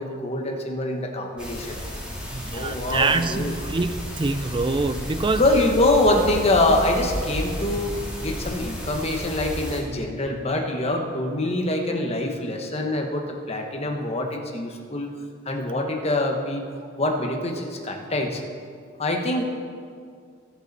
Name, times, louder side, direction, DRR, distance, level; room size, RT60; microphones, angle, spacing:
voice 1, 0.0-1.8 2.5-3.5 5.4-15.1 15.4-16.7 17.0-18.4 19.0-19.4, left 1 dB, 30° left, 2 dB, 1.2 m, -24 dB
sound 1, 1.4-9.8, equal, 5° right, 2.6 m, -33 dB
voice 2, 2.3-5.4, right 3 dB, 25° right, 11 dB, 0.4 m, -25 dB
20.0 x 6.8 x 4.2 m, 2.2 s
head